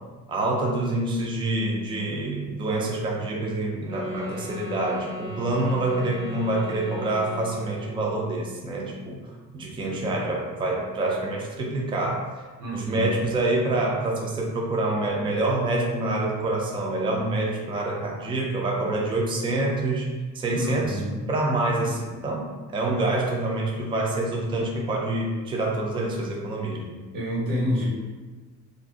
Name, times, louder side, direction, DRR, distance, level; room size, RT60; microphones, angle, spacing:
voice 1, 0.3-9.2 9.5-12.3 12.7-20.1 20.3-21.0 21.3-27.0, right 2 dB, 15° right, -2 dB, 0.3 m, -26 dB
sound 1, 3.8-8.0, left 1 dB, 60° right, 0.7 m, -37 dB
voice 2, 12.6-13.1 20.5-21.2 21.8-21.9 22.8-23.0 27.1-27.9, equal, 85° right, -6 dB, 1.2 m, -28 dB
2.5 x 2.4 x 3.5 m, 1.3 s
cardioid pair, 170°, 33 cm